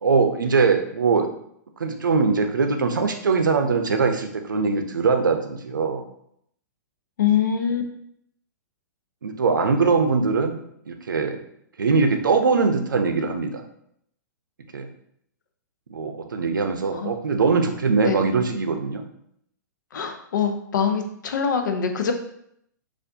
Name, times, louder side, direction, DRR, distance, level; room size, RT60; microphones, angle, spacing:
voice 1, 0.0-1.3 1.8-6.0 9.2-10.6 10.9-11.4 11.8-13.6 14.7-14.9 15.9-19.0, right 4 dB, 85° right, 5 dB, 0.5 m, -21 dB
voice 2, 7.2-7.8 16.9-17.2 18.0-18.3 19.9-22.1, left 7 dB, 70° left, 5 dB, 0.6 m, -24 dB
4.2 x 2.5 x 2.7 m, 0.71 s
hypercardioid pair, 120°, 10 cm